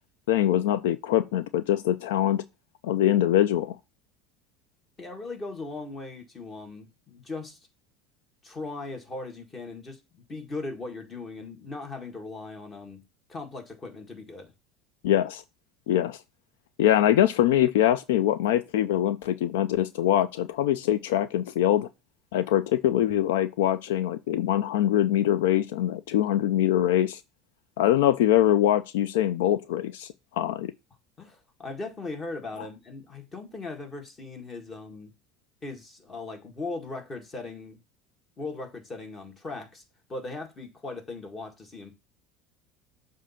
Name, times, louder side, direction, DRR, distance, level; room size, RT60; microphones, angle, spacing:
voice 1, 0.3-2.4 2.8-3.8 15.0-15.4 15.9-16.2 16.8-21.9 22.3-27.2 27.8-30.7, left 12 dB, 90° left, 0.4 m, -23 dB
voice 2, 5.0-7.6 8.4-13.0 13.3-14.5 31.2-35.1 35.6-37.8 38.4-39.8 40.1-41.9, left 3 dB, 30° left, 1.8 m, -38 dB
7.4 x 2.7 x 5.6 m
supercardioid pair, 115°, 0 cm